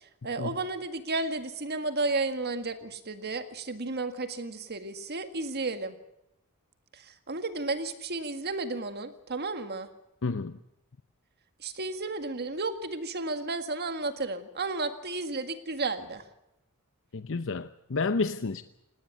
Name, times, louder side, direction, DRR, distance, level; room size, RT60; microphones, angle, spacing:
voice 1, 0.0-5.9 6.9-9.9 11.6-16.2, right 3 dB, 50° right, 9 dB, 1.8 m, -33 dB
voice 2, 10.2-10.6 17.1-18.6, left 3 dB, 60° left, 12 dB, 0.7 m, -30 dB
18.5 x 18.5 x 8.4 m, 0.85 s
head